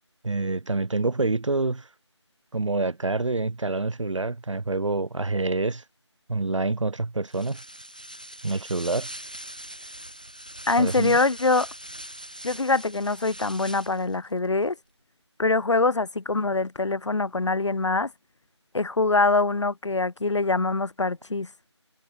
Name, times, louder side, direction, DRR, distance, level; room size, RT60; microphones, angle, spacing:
voice 1, 0.2-1.9 2.5-5.8 6.3-7.6 8.4-9.1 10.8-11.2, right 3 dB, 90° right, 0.6 m, -27 dB
sound 1, 7.3-14.2, right 1 dB, 15° left, 0.6 m, -41 dB
voice 2, 10.7-11.7 12.4-14.8 15.4-18.1 18.7-21.5, left 3 dB, 75° left, 0.6 m, -24 dB
figure-of-eight pair, 170°, 15 cm